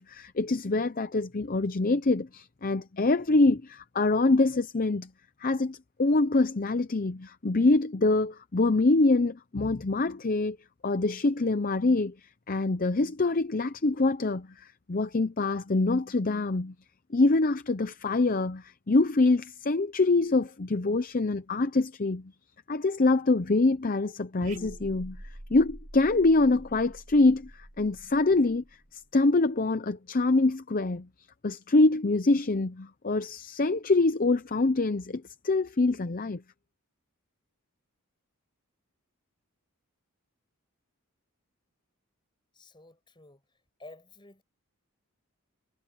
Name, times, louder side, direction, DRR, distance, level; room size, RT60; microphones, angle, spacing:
voice 1, 0.0-5.1 5.4-10.6 10.8-16.7 17.1-22.3 22.7-25.2 25.5-28.6 28.9-31.1 31.4-36.4, left 2 dB, 40° left, 0.6 m, -25 dB
sound 1, 24.4-29.0, right 1 dB, 30° right, 1.7 m, -46 dB
voice 2, 42.5-43.4 43.8-44.4, left 2 dB, 20° left, 5.8 m, -51 dB
head